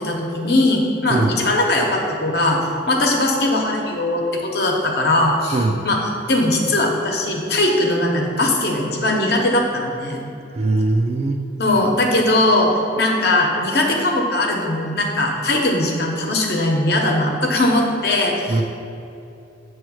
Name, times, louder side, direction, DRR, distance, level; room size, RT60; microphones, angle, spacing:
voice 1, 0.0-5.6 5.8-6.0 6.3-10.2 11.6-18.6, left 1 dB, 60° left, 0 dB, 1.0 m, -19 dB
voice 2, 5.5-5.8 10.5-11.4 18.5-18.6, right 2 dB, 35° right, 4 dB, 0.4 m, -20 dB
8.0 x 3.2 x 6.2 m, 2.7 s
head